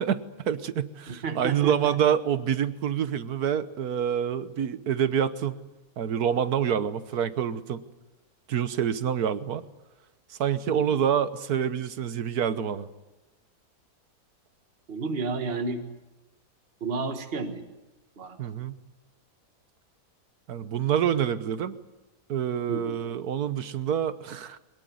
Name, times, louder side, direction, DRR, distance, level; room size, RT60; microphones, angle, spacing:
voice 1, 0.0-5.6 6.0-7.8 8.5-9.6 10.4-12.9 18.4-18.7 20.5-21.8 22.3-24.6, right 8 dB, 80° right, 13 dB, 1.6 m, -27 dB
voice 2, 1.1-1.9 10.7-11.0 14.9-15.8 16.8-17.6 18.2-18.4 22.7-23.0, right 4 dB, 40° right, 6 dB, 1.7 m, -32 dB
22.5 x 20.5 x 9.5 m, 1.0 s
omnidirectional pair, 1.6 m